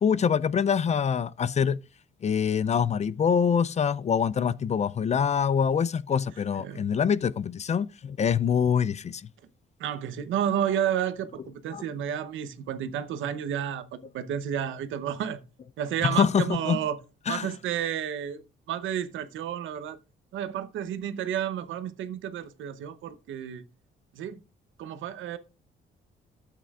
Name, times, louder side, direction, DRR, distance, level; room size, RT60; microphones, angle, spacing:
voice 1, 0.0-1.8 2.2-9.3 11.7-11.8 16.0-16.8 17.3-17.5, left 7 dB, 35° left, 0.4 m, -25 dB
voice 2, 6.6-6.9 9.8-15.4 15.8-17.0 17.3-18.4 18.7-20.0 20.3-23.6 24.1-24.4 24.8-25.4, right 9 dB, 80° right, 0.9 m, -31 dB
12.5 x 8.5 x 2.4 m
cardioid pair, 90°, 20 cm